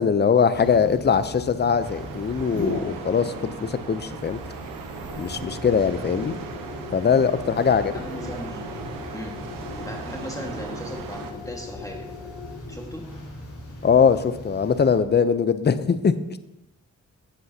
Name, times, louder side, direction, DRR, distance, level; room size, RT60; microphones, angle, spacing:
voice 1, 0.0-4.4 5.2-6.3 6.9-7.9 13.8-16.1, left 6 dB, 30° left, 13 dB, 0.6 m, -21 dB
sound 1, 0.5-15.0, left 2 dB, 65° left, 3.3 m, -38 dB
sound 2, 1.8-11.3, right 5 dB, 90° right, 0.8 m, -38 dB
voice 2, 7.5-9.4 9.8-12.1 12.7-13.1, equal, 10° left, 1 dB, 1.7 m, -38 dB
10.0 x 8.0 x 2.8 m, 0.92 s
cardioid pair, 55°, 33 cm